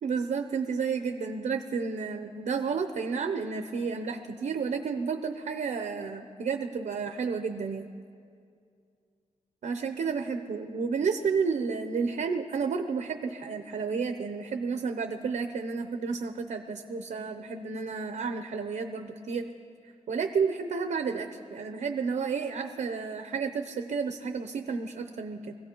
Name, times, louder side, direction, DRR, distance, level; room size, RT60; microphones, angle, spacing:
voice 1, 0.0-7.9 9.6-19.5 20.1-25.5, right 5 dB, 90° right, 7 dB, 0.7 m, -31 dB
24.5 x 16.5 x 3.0 m, 2.3 s
wide cardioid pair, 90°, 13 cm